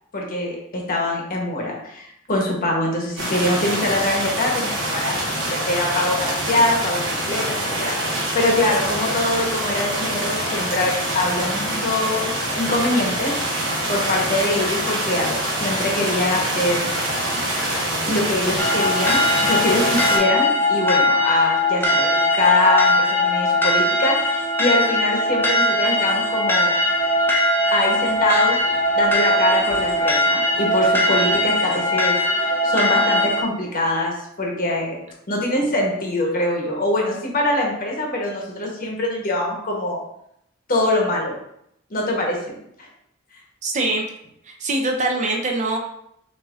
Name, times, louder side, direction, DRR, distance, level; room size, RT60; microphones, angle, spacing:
voice 1, 0.1-5.2 5.5-13.3 13.6-16.9 18.0-26.7 27.7-28.6 28.9-35.0 35.3-40.0 40.7-41.3 41.9-42.9, left 1 dB, 45° left, -1 dB, 1.0 m, -23 dB
sound 1, 3.2-20.2, right 1 dB, 65° right, 1.2 m, -25 dB
sound 2, 18.6-33.4, left 1 dB, 10° left, 0.7 m, -20 dB
voice 2, 43.6-44.0 44.6-45.8, right 2 dB, 35° right, 1 dB, 0.6 m, -22 dB
6.3 x 2.7 x 2.4 m, 0.76 s
head